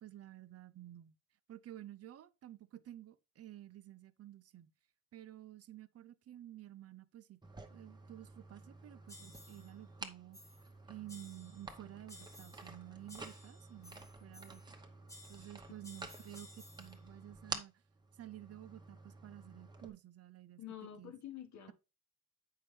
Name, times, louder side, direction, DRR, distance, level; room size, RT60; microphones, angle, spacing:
voice 1, 0.0-1.1 1.5-4.7 5.1-7.4 7.7-10.4 10.9-14.8 15.3-17.8 18.1-20.6 21.0-21.1, right 13 dB, 45° right, 0.6 m, -52 dB
sound 1, 7.4-19.9, right 2 dB, 10° right, 1.0 m, -51 dB
sound 2, 9.1-9.7 10.3-10.7 11.1-11.7 12.1-12.8 13.1-14.7 15.1-17.0, left 1 dB, 10° left, 1.2 m, -57 dB
voice 2, 20.6-21.7, left 11 dB, 55° left, 1.5 m, -48 dB
8.6 x 5.5 x 3.3 m
cardioid pair, 150°, 34 cm